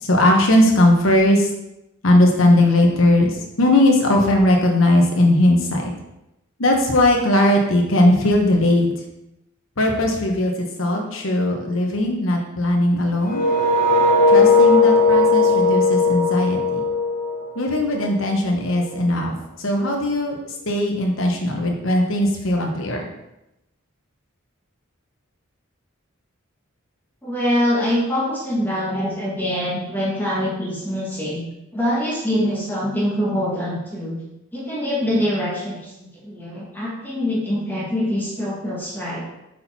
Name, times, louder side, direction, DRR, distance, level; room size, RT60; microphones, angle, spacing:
voice 1, 0.0-1.5 2.0-5.9 6.6-8.9 9.8-13.4 14.3-16.8 17.6-20.4 20.7-23.1, left 1 dB, 70° left, 1 dB, 1.2 m, -18 dB
sound 1, 13.3-18.1, left 3 dB, 45° left, 1.0 m, -17 dB
voice 2, 27.2-31.4 31.7-34.2 34.5-39.2, equal, 10° left, -6 dB, 1.5 m, -24 dB
6.3 x 4.4 x 4.3 m, 0.90 s
head